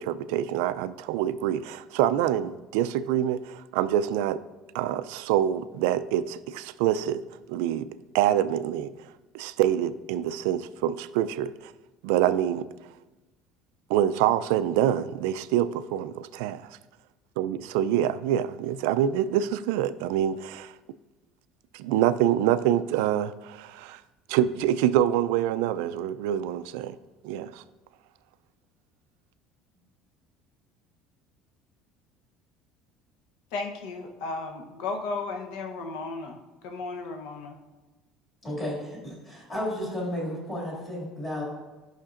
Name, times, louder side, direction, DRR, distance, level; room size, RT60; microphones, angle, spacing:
voice 1, 0.0-4.4 4.7-7.2 7.5-7.9 8.1-8.9 9.3-11.7 12.0-12.7 13.9-16.7 17.4-20.7 21.7-24.0 24.3-27.0 27.2-27.6, right 11 dB, 90° right, 14 dB, 0.3 m, -26 dB
voice 2, 33.5-36.4 36.6-37.6, left 3 dB, 70° left, 4 dB, 0.8 m, -34 dB
voice 3, 38.4-41.4, left 1 dB, 20° left, -5 dB, 2.2 m, -33 dB
11.5 x 5.7 x 2.5 m, 1.1 s
cardioid pair, 180°, 0 cm